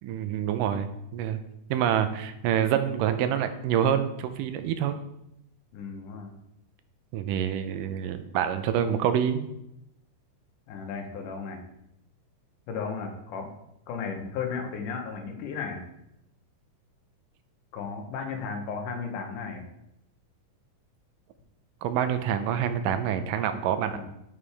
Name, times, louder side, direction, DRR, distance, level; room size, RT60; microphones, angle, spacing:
voice 1, 0.0-1.4 1.7-5.0 7.1-9.5 21.8-24.0, right 9 dB, 90° right, 9 dB, 2.3 m, -27 dB
voice 2, 5.7-6.4 10.7-11.6 12.7-13.5 13.9-15.8 17.7-19.7 23.8-24.1, left 5 dB, 75° left, 3 dB, 2.5 m, -35 dB
11.0 x 5.7 x 3.4 m, 0.83 s
omnidirectional pair, 3.7 m